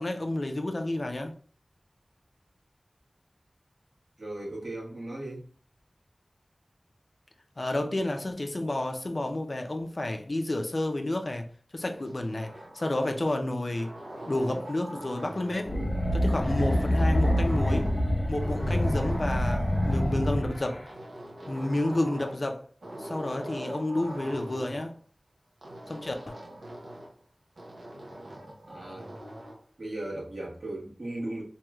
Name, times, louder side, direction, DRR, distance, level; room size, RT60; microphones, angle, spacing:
voice 1, 0.0-1.3 7.6-11.5 11.7-13.9 14.3-15.8 16.1-17.9 18.3-20.8 21.5-22.7 22.9-25.0 25.9-26.4, left 1 dB, 50° left, 0.4 m, -30 dB
voice 2, 4.2-5.5 28.7-29.1 29.8-31.4, right 1 dB, 65° right, 1.2 m, -37 dB
sound 1, 11.8-13.4 13.7-15.8 16.4-18.1 18.4-20.4 20.9-22.5 22.8-24.8 25.6-27.2 27.6-29.6, right 1 dB, 90° right, 0.7 m, -42 dB
sound 2, 15.6-20.9, left 1 dB, 35° left, 0.9 m, -26 dB
3.0 x 2.7 x 2.3 m
wide cardioid pair, 55°, 0 cm